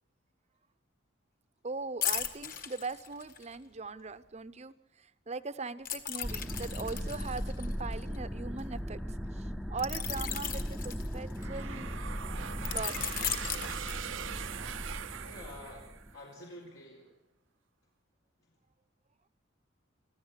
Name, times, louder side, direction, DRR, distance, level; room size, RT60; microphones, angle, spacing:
voice 1, 1.6-4.7 5.3-9.0 9.7-11.9 12.7-13.1, right 4 dB, 35° right, 14 dB, 0.7 m, -40 dB
sound 1, 2.0-3.5 5.8-8.6 9.8-11.6 12.6-14.5 14.9-15.1, left 9 dB, 45° left, 1.7 m, -37 dB
sound 2, 6.2-16.1, equal, ahead, 0.7 m, -38 dB
sound 3, 11.4-16.3, right 8 dB, 75° right, 0.7 m, -42 dB
voice 2, 15.2-17.2 18.4-18.5, left 1 dB, 80° left, -2 dB, 4.1 m, -49 dB
25.0 x 15.0 x 8.2 m, 0.94 s
head